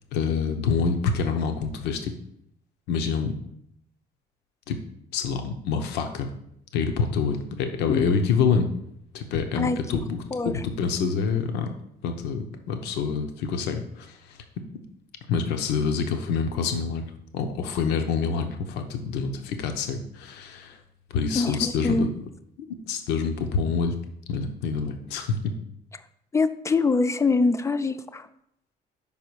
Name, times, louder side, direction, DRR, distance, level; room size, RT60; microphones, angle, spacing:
voice 1, 0.1-2.1 2.9-3.3 4.7-4.8 5.1-6.3 6.7-8.7 9.1-11.7 12.0-14.4 15.3-20.8 21.1-22.1 22.9-24.0 24.3-25.6, left 5 dB, 85° left, 6 dB, 0.7 m, -26 dB
voice 2, 21.3-22.1 26.3-28.3, left 3 dB, 15° left, 12 dB, 0.4 m, -24 dB
5.5 x 4.8 x 4.6 m, 0.74 s
cardioid pair, 110°, 17 cm